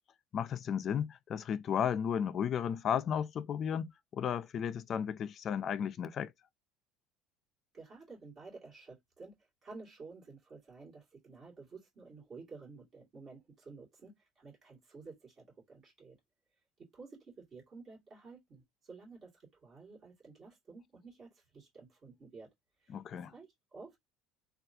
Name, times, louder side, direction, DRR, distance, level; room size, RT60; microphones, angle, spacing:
voice 1, 0.3-6.3 22.9-23.3, left 8 dB, 35° left, 0.3 m, -34 dB
voice 2, 7.7-9.4 9.6-16.2 16.8-22.5 22.8-24.0, right 4 dB, 35° right, 2.1 m, -52 dB
3.4 x 2.3 x 2.6 m
cardioid pair, 145°, 0 cm